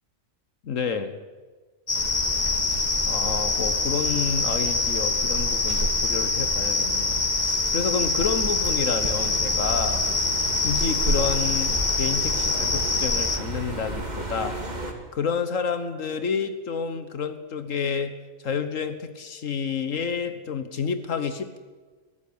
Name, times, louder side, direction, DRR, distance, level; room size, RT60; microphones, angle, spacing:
voice 1, 0.6-1.2 2.7-10.1 10.6-14.6 15.1-18.1 18.4-21.6, left 6 dB, 80° left, 10 dB, 1.6 m, -29 dB
sound 1, 1.9-13.4, left 3 dB, 35° left, 1.5 m, -25 dB
sound 2, 1.9-14.9, right 1 dB, 35° right, 2.7 m, -33 dB
22.0 x 15.5 x 8.6 m, 1.4 s
omnidirectional pair, 1.3 m